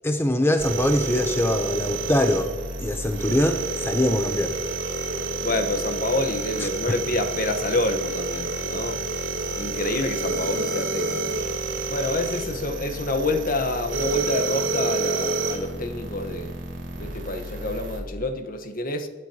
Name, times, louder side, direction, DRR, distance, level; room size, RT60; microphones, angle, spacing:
voice 1, 0.0-2.5 2.8-4.6 6.6-7.0, left 1 dB, 15° left, 0.6 m, -23 dB
sound 1, 0.6-18.0, right 3 dB, 85° right, 2.7 m, -29 dB
voice 2, 5.4-9.0 9.6-11.4 11.9-16.5 17.0-19.1, left 1 dB, 50° left, 1.1 m, -28 dB
24.0 x 9.9 x 2.9 m
head